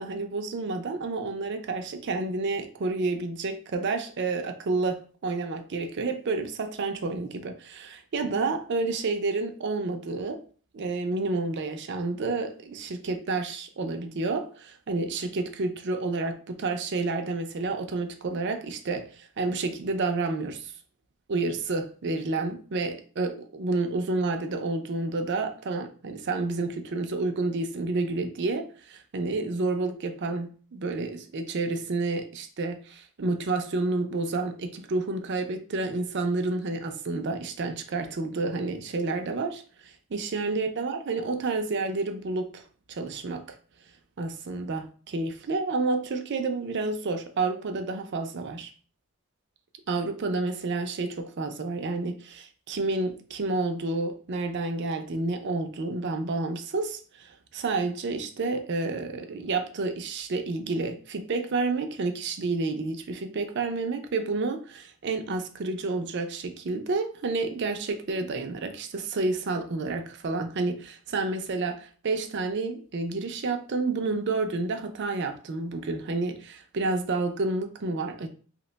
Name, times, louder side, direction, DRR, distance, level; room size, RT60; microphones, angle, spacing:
voice 1, 0.0-10.4 10.7-20.7 21.3-42.6 42.9-43.4 44.2-48.7 49.9-78.3, right 3 dB, 50° right, 5 dB, 0.4 m, -30 dB
2.8 x 2.1 x 3.9 m, 0.40 s
head